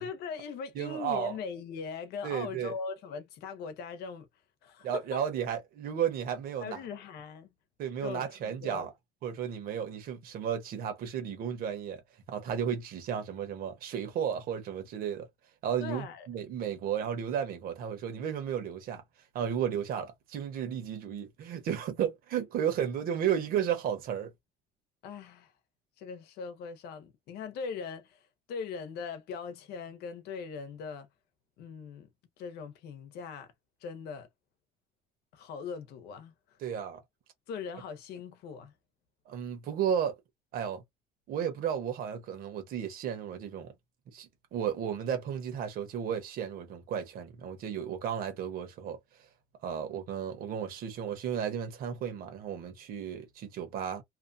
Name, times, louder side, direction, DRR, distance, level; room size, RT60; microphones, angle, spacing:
voice 1, 0.0-4.3 4.6-4.9 6.6-7.5 8.0-8.9 15.8-16.3 25.0-25.5 26.0-31.1 31.6-32.1 32.4-33.5 33.8-34.3 35.3-36.3 37.5-38.7, left 5 dB, 75° left, 0.9 m, -40 dB
voice 2, 0.7-1.4 2.2-2.7 4.8-6.8 7.8-8.9 9.2-12.0 12.3-15.3 15.6-19.0 19.3-24.3 36.6-37.0 39.3-40.2 40.5-40.8 41.3-43.7 44.1-49.0 49.6-54.0, right 8 dB, 60° right, 1.2 m, -33 dB
2.9 x 2.3 x 2.6 m
cardioid pair, 165°, 17 cm